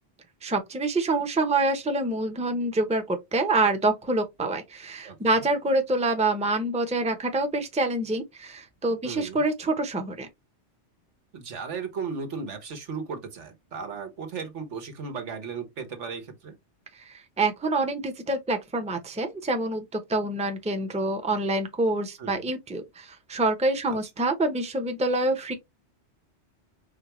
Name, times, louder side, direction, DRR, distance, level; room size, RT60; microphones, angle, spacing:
voice 1, 0.4-10.3 17.0-25.5, right 2 dB, 5° right, 0.6 m, -26 dB
voice 2, 5.0-5.4 9.0-9.4 11.3-16.6 22.2-22.5 23.9-24.0, right 5 dB, 85° right, 1.4 m, -36 dB
4.4 x 3.4 x 3.0 m
omnidirectional pair, 1.2 m